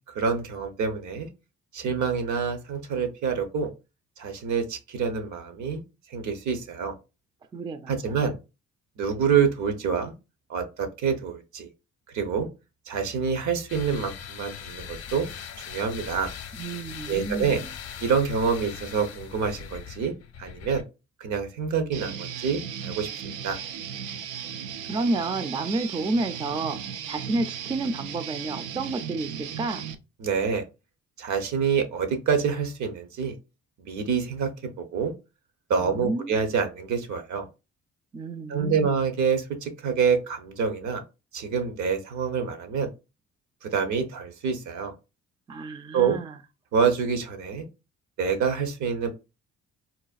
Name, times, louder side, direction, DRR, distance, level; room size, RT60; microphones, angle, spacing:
voice 1, 0.1-1.3 1.7-3.7 4.2-5.8 6.1-6.9 7.9-8.4 9.0-10.1 10.5-11.7 12.1-12.5 12.9-15.3 15.7-16.3 17.1-17.6 18.0-20.1 20.4-20.8 21.2-23.6 30.2-30.6 31.2-33.3 33.8-34.5 34.9-35.1 35.7-37.5 38.5-41.0 41.3-42.9 43.6-44.9 45.9-46.2 46.7-47.7 48.2-49.1, right 6 dB, 70° right, 0.8 m, -26 dB
voice 2, 7.5-8.2 16.6-17.7 24.9-29.9 35.8-36.4 38.1-39.1 45.5-46.4, right 2 dB, 15° right, 0.3 m, -30 dB
sound 1, 13.7-20.8, left 8 dB, 55° left, 0.6 m, -40 dB
Guitar, 21.9-29.9, right 8 dB, 90° right, 0.5 m, -36 dB
4.0 x 2.2 x 2.4 m
cardioid pair, 90°, 30 cm